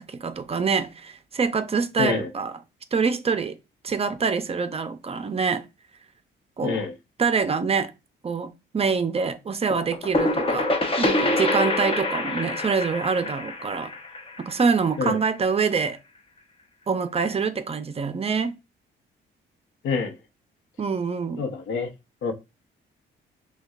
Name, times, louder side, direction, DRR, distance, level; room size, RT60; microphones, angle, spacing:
voice 1, 0.0-2.6 2.9-3.6 3.8-5.7 6.6-6.9 7.2-7.9 8.2-10.7 11.0-13.9 14.4-16.0 16.9-18.6 20.8-21.4, right 5 dB, 30° right, 0.5 m, -25 dB
voice 2, 2.0-2.3 6.6-6.9 15.0-15.2 19.8-20.2 21.4-21.9 22.2-22.3, left 5 dB, 75° left, 0.9 m, -26 dB
sound 1, 9.7-15.3, left 2 dB, 30° left, 0.8 m, -26 dB
6.2 x 2.3 x 2.4 m
cardioid pair, 90°, 20 cm